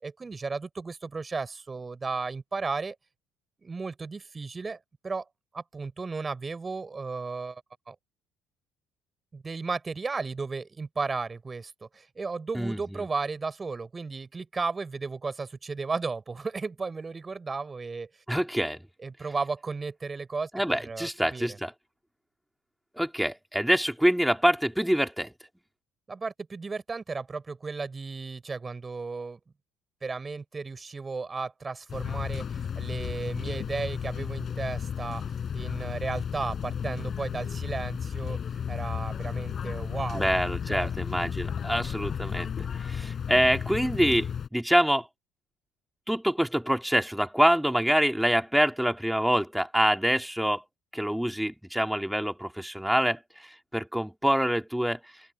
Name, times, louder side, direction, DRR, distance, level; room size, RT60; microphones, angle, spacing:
voice 1, 0.0-2.9 3.6-4.8 5.0-5.2 5.5-7.6 7.9-8.0 9.3-18.1 19.0-21.6 26.1-29.4 30.0-40.3 40.7-40.9, right 4 dB, 30° right, 4.8 m, -34 dB
voice 2, 12.5-13.0 18.3-18.8 20.5-21.7 23.0-25.3 40.1-42.5 42.7-45.1 46.1-50.6 50.9-55.0, equal, 5° right, 3.2 m, -26 dB
sound 1, 31.9-44.5, left 7 dB, 45° left, 6.3 m, -33 dB
open air
hypercardioid pair, 60°, 0 cm